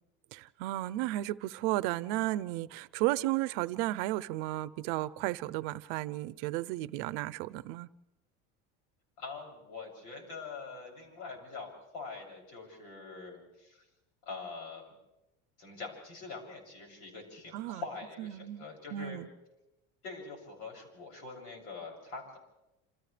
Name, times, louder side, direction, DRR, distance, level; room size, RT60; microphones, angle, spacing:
voice 1, 0.3-7.9 17.5-17.8 18.2-18.6 18.9-19.3, right 16 dB, 75° right, 18 dB, 0.7 m, -33 dB
voice 2, 9.2-13.8 14.2-14.9 15.6-19.2 20.0-22.4, left 4 dB, 70° left, 0 dB, 7.3 m, -44 dB
28.5 x 28.0 x 3.4 m, 0.93 s
cardioid pair, 175°, 29 cm